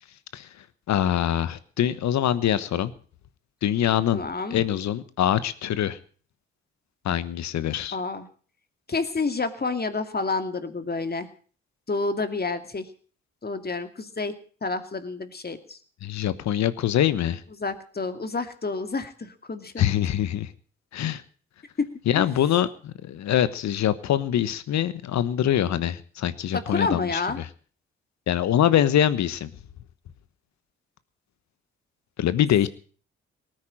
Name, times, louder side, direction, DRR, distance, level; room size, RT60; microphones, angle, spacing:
voice 1, 0.9-2.9 3.6-4.2 4.5-6.0 7.0-8.0 16.0-17.4 19.8-20.5 20.9-21.2 22.1-27.5 28.3-29.5 32.2-32.7, left 11 dB, 65° left, 15 dB, 1.2 m, -24 dB
voice 2, 4.1-4.6 7.9-8.3 8.9-11.3 11.9-12.9 13.4-15.8 17.6-19.9 21.8-21.9 22.2-22.3 26.5-27.4, left 3 dB, 35° left, 9 dB, 2.4 m, -29 dB
18.5 x 9.4 x 7.5 m, 0.43 s
hypercardioid pair, 45°, 29 cm